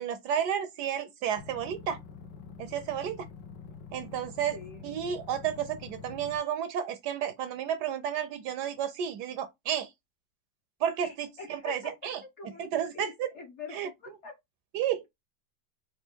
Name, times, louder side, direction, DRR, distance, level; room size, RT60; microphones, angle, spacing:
voice 1, 0.0-2.0 2.6-3.3 3.9-4.6 4.8-9.9 10.8-12.2 12.6-13.3 13.7-13.9 14.7-15.1, right 9 dB, 75° right, 1.1 m, -32 dB
sound 1, 1.4-6.4, left 6 dB, 85° left, 1.6 m, -46 dB
voice 2, 4.5-4.9 11.0-11.9 12.4-13.7 14.0-14.3, left 4 dB, 50° left, 1.0 m, -44 dB
4.4 x 2.5 x 4.3 m
omnidirectional pair, 2.0 m